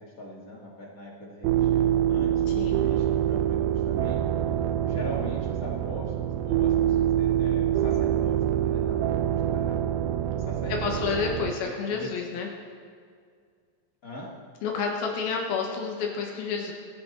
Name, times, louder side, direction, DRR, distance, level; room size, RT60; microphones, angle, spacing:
voice 1, 0.0-4.2 4.8-9.8 10.4-11.0 11.6-12.1 14.0-14.3, equal, 30° left, -3 dB, 1.6 m, -41 dB
sound 1, 1.4-11.5, right 11 dB, 85° right, 2.5 m, -25 dB
voice 2, 10.7-12.5 14.6-16.7, left 5 dB, 90° left, 1 dB, 3.3 m, -29 dB
26.0 x 8.8 x 4.1 m, 2.1 s
omnidirectional pair, 4.2 m